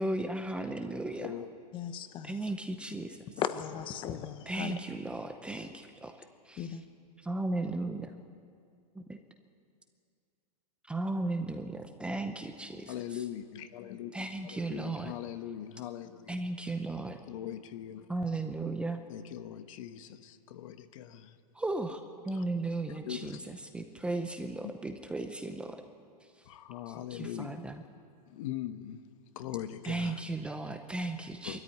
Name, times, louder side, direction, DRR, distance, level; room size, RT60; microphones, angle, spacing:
voice 1, 0.0-1.3 2.3-3.2 4.5-6.1 6.5-6.7 7.2-8.1 8.9-9.2 10.9-12.9 14.1-15.1 16.3-17.2 18.1-19.0 21.5-22.0 22.2-23.4 23.7-25.8 27.1-27.8 29.9-31.6, right 2 dB, 5° right, 6 dB, 0.8 m, -35 dB
voice 2, 1.2-1.5 12.9-14.1 14.4-16.4 17.3-18.1 19.1-21.4 22.3-22.4 22.9-23.4 26.5-27.6 28.3-29.0 29.3-30.2 31.4-31.6, left 11 dB, 55° left, 9 dB, 1.3 m, -41 dB
voice 3, 1.7-2.3 3.4-4.7 6.6-6.8, left 9 dB, 25° left, 10 dB, 1.1 m, -36 dB
21.5 x 14.0 x 9.6 m, 2.3 s
hypercardioid pair, 150°, 20 cm